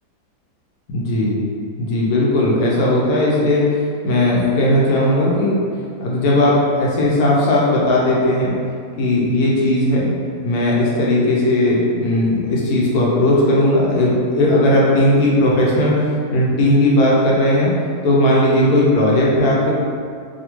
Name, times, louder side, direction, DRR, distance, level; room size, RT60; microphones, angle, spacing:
voice 1, 0.9-1.4 1.8-3.6 4.0-5.6 6.0-8.5 9.0-10.1 10.4-17.7 18.0-19.7, left 1 dB, 75° left, -5 dB, 1.1 m, -16 dB
2.7 x 2.4 x 2.9 m, 2.2 s
omnidirectional pair, 1.7 m